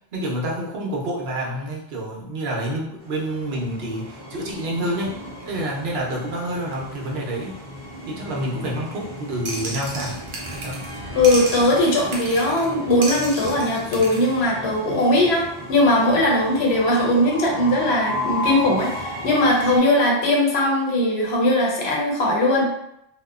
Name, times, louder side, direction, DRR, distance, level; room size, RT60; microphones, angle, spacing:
voice 1, 0.1-5.1 5.5-7.6 8.1-10.2 10.5-10.9, right 1 dB, 70° right, -2 dB, 0.9 m, -28 dB
Train, 3.0-19.8, equal, 15° right, 1.0 m, -34 dB
sound 1, 9.5-11.0 11.2-12.7 13.0-14.3, right 2 dB, 50° right, 0.3 m, -33 dB
voice 2, 11.1-22.7, left 1 dB, 75° left, -2 dB, 0.9 m, -19 dB
2.8 x 2.1 x 2.3 m, 0.81 s
omnidirectional pair, 1.1 m